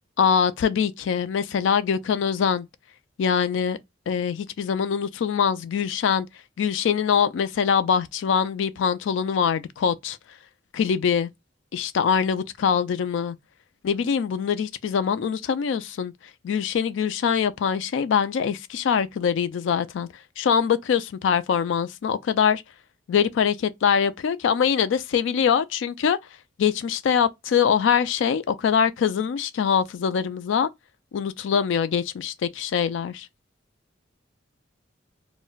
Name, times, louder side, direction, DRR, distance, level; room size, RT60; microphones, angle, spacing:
voice 1, 0.2-2.7 3.2-3.8 4.1-6.3 6.6-10.2 10.7-11.3 11.7-13.4 13.8-16.1 16.4-20.1 20.4-22.6 23.1-26.2 26.6-30.7 31.1-33.3, left 7 dB, 70° left, 0.3 m, -23 dB
2.3 x 2.1 x 3.8 m
head